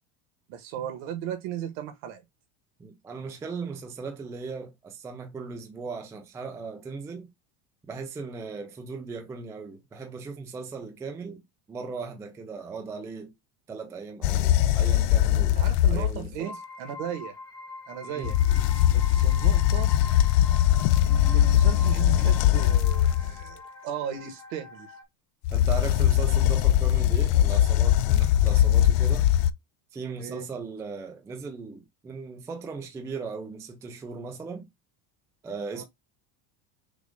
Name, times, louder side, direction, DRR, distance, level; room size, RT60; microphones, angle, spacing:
voice 1, 0.5-2.2 15.6-17.4 17.9-18.4 18.9-19.9 21.0-24.9 30.2-30.5 35.7-35.8, right 10 dB, 70° right, 1.6 m, -36 dB
voice 2, 2.8-7.3 7.9-11.4 11.7-13.3 13.7-15.6 15.9-16.5 18.0-18.4 25.5-29.3 29.9-34.7 35.4-35.8, right 4 dB, 5° right, 0.3 m, -38 dB
sound 1, 14.2-16.3 18.2-23.4 25.4-29.5, left 12 dB, 65° left, 0.5 m, -21 dB
sound 2, 16.4-25.0, left 3 dB, 10° left, 0.9 m, -44 dB
6.1 x 2.5 x 3.6 m
cardioid pair, 175°, 44 cm